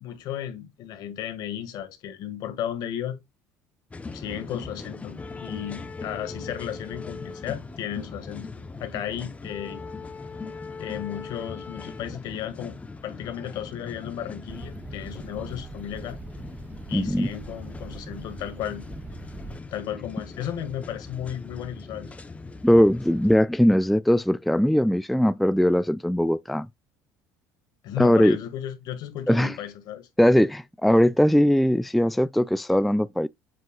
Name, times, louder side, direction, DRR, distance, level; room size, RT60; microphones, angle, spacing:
voice 1, 0.0-3.2 4.1-8.5 8.8-9.8 10.8-12.8 13.0-16.2 16.9-18.9 19.7-22.1 27.8-30.1, left 10 dB, 65° left, 1.8 m, -34 dB
sound 1, 3.9-23.4, left 4 dB, 20° left, 0.9 m, -40 dB
sound 2, 14.5-19.6, right 3 dB, 20° right, 0.8 m, -42 dB
voice 2, 16.9-17.3 22.6-26.7 28.0-28.4 29.3-29.6 30.2-33.3, equal, ahead, 0.3 m, -20 dB
7.6 x 5.9 x 2.4 m
supercardioid pair, 100°, 8 cm